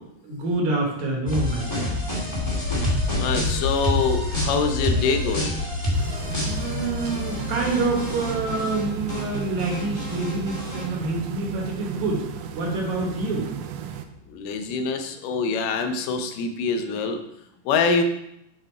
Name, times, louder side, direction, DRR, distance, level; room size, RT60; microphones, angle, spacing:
voice 1, 0.2-2.1 6.4-12.3 12.6-13.5, right 2 dB, 65° right, -1 dB, 2.4 m, -27 dB
sound 1, 1.3-8.8 9.1-10.8, left 1 dB, 20° left, 0.8 m, -29 dB
sound 2, 2.4-14.2, left 4 dB, 60° left, 2.2 m, -33 dB
voice 2, 3.2-5.6 14.3-17.2 17.7-18.0, left 4 dB, 90° left, 6 dB, 2.3 m, -25 dB
sound 3, 5.9-14.1, right 10 dB, 85° right, 2.1 m, -35 dB
8.0 x 3.6 x 4.4 m, 0.81 s
omnidirectional pair, 3.7 m